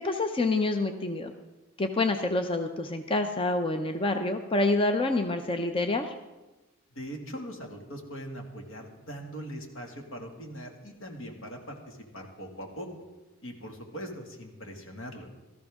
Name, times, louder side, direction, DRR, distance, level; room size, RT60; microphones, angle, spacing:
voice 1, 0.0-1.3 1.8-6.1, left 2 dB, 25° left, 6 dB, 0.6 m, -27 dB
voice 2, 6.9-12.9 13.4-15.3, equal, 75° left, 2 dB, 2.2 m, -41 dB
17.5 x 14.0 x 3.6 m, 1.1 s
head